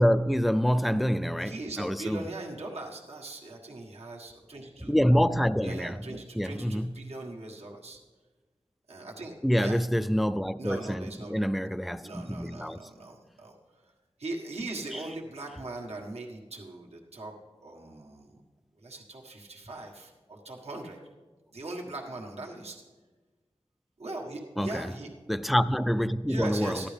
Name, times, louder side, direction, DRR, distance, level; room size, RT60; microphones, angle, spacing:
voice 1, 0.0-2.2 4.9-7.1 9.4-12.8 14.9-15.0 24.6-24.9 25.3-26.9, equal, ahead, 0.3 m, -26 dB
voice 2, 1.4-4.9 5.6-8.0 8.9-9.8 10.5-11.7 12.0-13.6 14.2-17.3 17.6-18.4 18.8-21.0 21.5-22.8 24.0-25.1 26.3-26.9, right 2 dB, 80° right, 1.5 m, -40 dB
14.5 x 11.0 x 3.4 m
wide cardioid pair, 60°, 11 cm